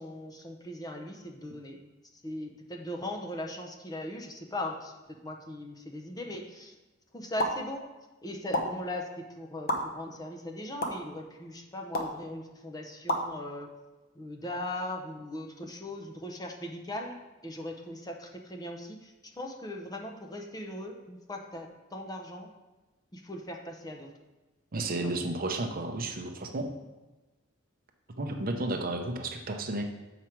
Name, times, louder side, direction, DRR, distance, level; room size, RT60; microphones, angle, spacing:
voice 1, 0.0-1.8 2.2-6.7 7.1-7.9 8.2-13.7 14.2-22.5 23.1-24.1 24.8-25.2, left 1 dB, 20° left, 2 dB, 0.6 m, -39 dB
sound 1, 7.4-7.6 8.5-8.6 9.7-9.8 10.8-10.9 11.9-12.1 13.1-13.2, left 1 dB, 50° left, 0.8 m, -28 dB
voice 2, 24.7-26.7 28.2-29.8, right 2 dB, 45° right, 4 dB, 0.7 m, -32 dB
7.2 x 5.0 x 4.4 m, 1.1 s
head